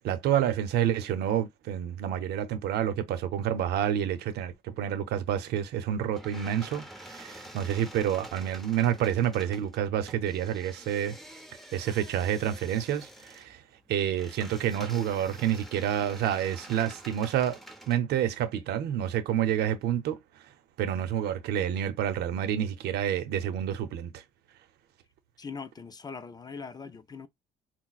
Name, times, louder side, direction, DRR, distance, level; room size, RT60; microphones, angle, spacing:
voice 1, 0.0-11.2 11.7-13.6 13.9-17.6 17.9-20.2 20.8-24.2, right 10 dB, 75° right, 0.7 m, -28 dB
sound 1, 6.1-18.0, right 1 dB, ahead, 1.0 m, -48 dB
voice 2, 25.4-27.3, left 5 dB, 25° left, 0.5 m, -41 dB
5.8 x 2.1 x 2.4 m
cardioid pair, 110°, 17 cm